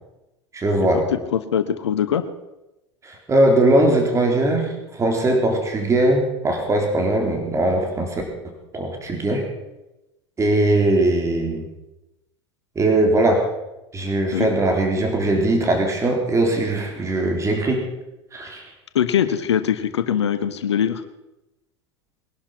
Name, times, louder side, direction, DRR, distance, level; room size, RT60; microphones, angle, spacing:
voice 1, 0.5-1.1 3.0-8.2 8.7-9.4 10.4-11.7 12.8-13.4 13.9-17.8 18.3-18.6, right 1 dB, 20° right, 2 dB, 3.8 m, -20 dB
voice 2, 1.3-2.2 14.3-14.5 18.9-21.0, left 9 dB, 70° left, 11 dB, 1.2 m, -22 dB
21.5 x 11.5 x 5.8 m, 0.96 s
figure-of-eight pair, 80°, 15 cm